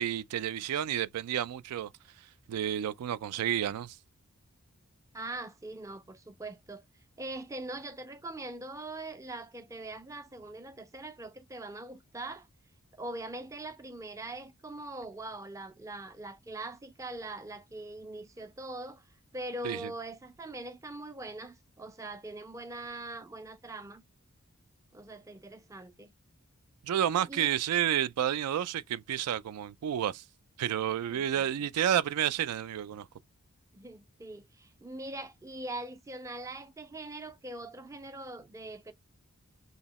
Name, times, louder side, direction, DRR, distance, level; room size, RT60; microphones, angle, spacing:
voice 1, 0.0-1.9 2.5-4.0 19.6-19.8 26.8-30.2 30.6-33.1, right 10 dB, 85° right, 0.3 m, -30 dB
voice 2, 5.1-6.8 7.2-12.5 12.9-19.0 19.3-24.0 24.9-26.1 27.3-27.5 33.7-38.9, right 2 dB, 15° right, 0.4 m, -42 dB
2.8 x 2.7 x 4.0 m
head